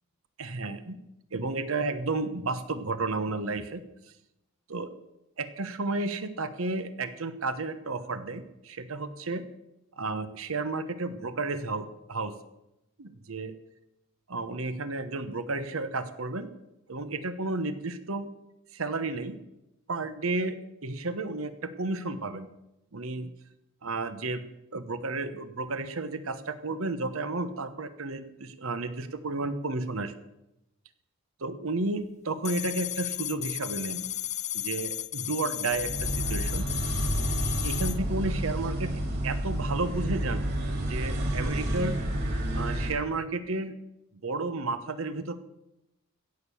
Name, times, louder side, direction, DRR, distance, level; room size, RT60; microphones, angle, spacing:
voice 1, 0.4-1.0 1.3-3.8 4.7-4.9 5.4-9.4 10.0-12.3 13.0-13.5 14.3-16.5 16.9-18.3 18.7-19.4 19.9-20.6 20.8-22.5 22.9-23.3 23.8-24.4 24.7-30.1 31.4-34.0 34.5-36.7 37.4-40.5 40.9-42.0 42.5-43.7 44.2-45.4, right 3 dB, 90° right, 11 dB, 1.1 m, -32 dB
sound 1, 32.5-38.0, left 13 dB, 35° left, 0.4 m, -34 dB
sound 2, 35.7-42.9, right 1 dB, 50° right, 3.8 m, -30 dB
16.0 x 6.6 x 7.0 m, 0.90 s
head